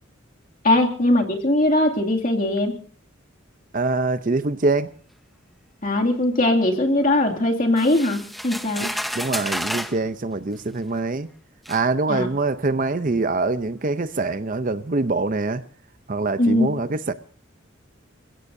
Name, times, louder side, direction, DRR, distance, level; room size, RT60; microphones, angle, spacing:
voice 1, 0.6-2.8 5.8-8.9 12.1-12.3 16.4-16.7, left 1 dB, 40° left, 2.5 m, -20 dB
voice 2, 3.7-4.9 9.1-11.3 11.7-15.6 16.1-17.1, right 3 dB, 40° right, 0.7 m, -24 dB
sound 1, 7.8-10.0 10.9-11.0 11.7-11.8, equal, ahead, 0.8 m, -30 dB
29.0 x 16.5 x 2.7 m
head